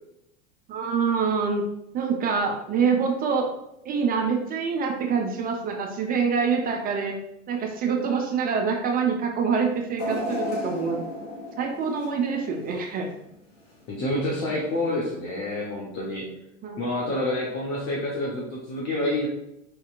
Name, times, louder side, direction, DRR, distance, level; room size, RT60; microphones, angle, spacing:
voice 1, 0.7-1.6 1.9-3.5 3.9-7.2 7.5-11.0 11.6-13.1 16.6-16.8, right 5 dB, 25° right, 2 dB, 0.4 m, -25 dB
sound 1, 10.0-13.1 13.6-13.7 14.7-14.8, left 2 dB, 70° left, 1.4 m, -33 dB
voice 2, 13.9-16.3 16.8-19.3, left 1 dB, 40° left, -3 dB, 0.9 m, -28 dB
4.5 x 2.8 x 2.4 m, 0.83 s
figure-of-eight pair, 80°, 39 cm